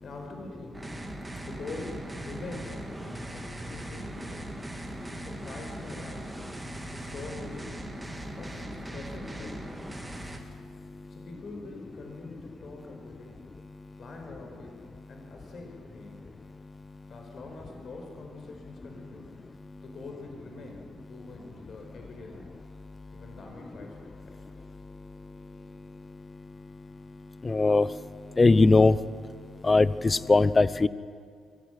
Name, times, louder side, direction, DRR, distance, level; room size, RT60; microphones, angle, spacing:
voice 1, 0.0-0.9 1.4-4.5 5.1-6.3 6.9-7.8 8.4-9.9 11.1-13.4 14.0-14.7 15.1-16.4 17.1-19.3 19.8-22.5 23.1-24.5, left 3 dB, 55° left, 3 dB, 4.9 m, -44 dB
sound 1, 0.7-10.4, right 1 dB, 10° right, 2.9 m, -40 dB
voice 2, 27.4-27.9 28.4-28.9 29.6-30.9, left 3 dB, 25° left, 17 dB, 0.8 m, -20 dB
24.0 x 18.5 x 9.4 m, 2.2 s
cardioid pair, 90°, 0 cm